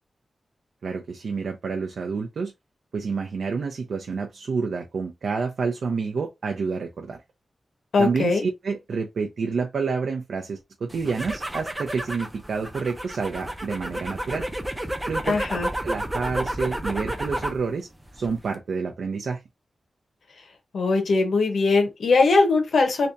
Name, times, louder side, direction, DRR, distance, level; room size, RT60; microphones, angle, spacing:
voice 1, 0.8-2.5 2.9-7.2 8.0-14.5 15.1-15.4 15.8-17.9 18.1-19.4, right 5 dB, 75° right, 0.6 m, -28 dB
voice 2, 7.9-8.4 15.3-15.7 20.7-23.1, left 3 dB, 80° left, 1.0 m, -20 dB
sound 1, 10.9-17.6 18.0-18.5, right 1 dB, 10° right, 0.6 m, -31 dB
3.4 x 2.8 x 2.7 m
wide cardioid pair, 140°, 0 cm